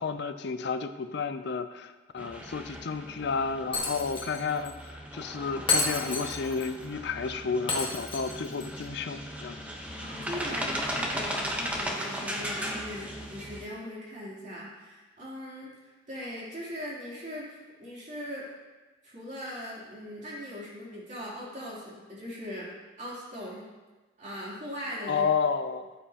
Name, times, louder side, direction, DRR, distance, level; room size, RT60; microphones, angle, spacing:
voice 1, 0.0-4.8 5.1-9.6 25.1-25.9, left 5 dB, 60° left, 10 dB, 0.5 m, -31 dB
sound 1, 2.2-13.7, equal, 10° right, 1.0 m, -37 dB
Shatter, 3.7-4.4 4.6-4.7 5.7-6.7 7.7-8.7, left 3 dB, 25° left, 1.6 m, -30 dB
voice 2, 9.9-18.5 19.0-22.7 23.0-23.6 24.2-25.3, equal, 40° right, -6 dB, 3.2 m, -40 dB
14.0 x 7.5 x 2.9 m, 1.2 s
head